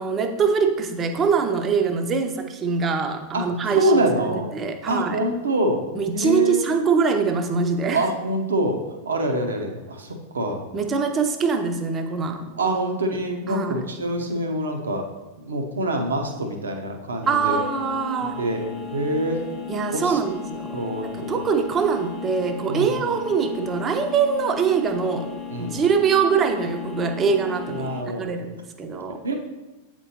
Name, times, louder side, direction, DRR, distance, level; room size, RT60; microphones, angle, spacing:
voice 1, 0.0-5.2 5.9-8.0 10.7-12.4 13.1-13.2 13.5-13.8 17.3-18.4 19.7-20.7 21.0-25.3 25.6-28.5 28.8-29.2, right 5 dB, 25° right, 6 dB, 0.6 m, -23 dB
voice 2, 3.8-4.5 4.9-5.8 6.1-6.6 7.9-8.8 9.1-10.6 12.6-15.0 15.4-17.6 18.4-18.6 18.9-19.4 19.9-20.2 20.7-21.4 22.7-22.9 25.5-25.8 27.7-28.3 29.2-29.4, right 1 dB, 70° right, 4 dB, 0.8 m, -25 dB
sound 1, 17.2-28.0, left 6 dB, 20° left, 0.8 m, -35 dB
8.2 x 4.4 x 2.8 m, 1.1 s
figure-of-eight pair, 90°, 0 cm